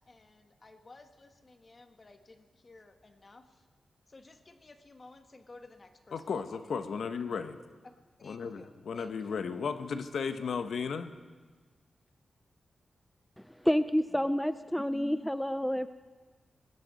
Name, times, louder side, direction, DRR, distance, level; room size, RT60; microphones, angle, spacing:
voice 1, 0.0-3.7 4.1-6.6 7.8-7.9 8.2-9.3, left 3 dB, 35° left, 6 dB, 1.3 m, -55 dB
voice 2, 6.1-7.6 8.2-11.1, left 5 dB, 75° left, 9 dB, 0.8 m, -35 dB
voice 3, 13.4-15.9, equal, 5° left, 12 dB, 0.4 m, -29 dB
20.0 x 17.0 x 4.1 m, 1.4 s
wide cardioid pair, 125°, 0 cm